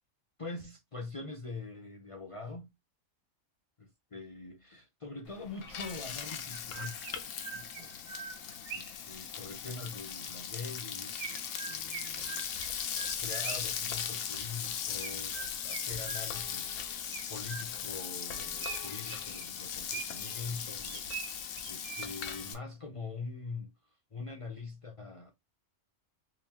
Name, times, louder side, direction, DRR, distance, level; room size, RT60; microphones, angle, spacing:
voice 1, 0.4-2.7 4.1-7.0 7.5-8.0 8.4-23.7 24.1-25.3, left 3 dB, 50° left, 0.4 m, -44 dB
Frying (food), 5.3-22.5, left 8 dB, 85° left, 1.0 m, -38 dB
Chirp tweet, 5.7-5.8 6.5-9.1 11.2-13.8 15.0-16.6 17.1-18.0 18.6-20.4 20.8-22.3, right 8 dB, 70° right, 1.0 m, -44 dB
3.5 x 2.8 x 2.9 m
omnidirectional pair, 1.3 m